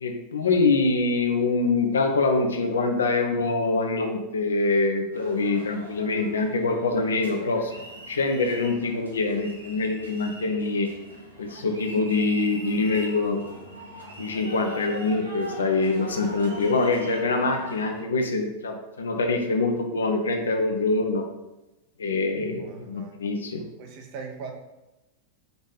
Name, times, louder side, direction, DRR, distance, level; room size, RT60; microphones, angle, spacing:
voice 1, 0.0-7.7 8.1-10.9 11.4-13.4 14.2-21.2 22.0-23.6, left 3 dB, 70° left, 4 dB, 0.5 m, -24 dB
sound 1, 5.1-18.0, right 1 dB, 80° right, 0.8 m, -42 dB
voice 2, 22.6-23.1 23.8-24.5, right 5 dB, 45° right, 3 dB, 0.7 m, -39 dB
3.9 x 3.0 x 3.6 m, 0.96 s
figure-of-eight pair, 90°, 0 cm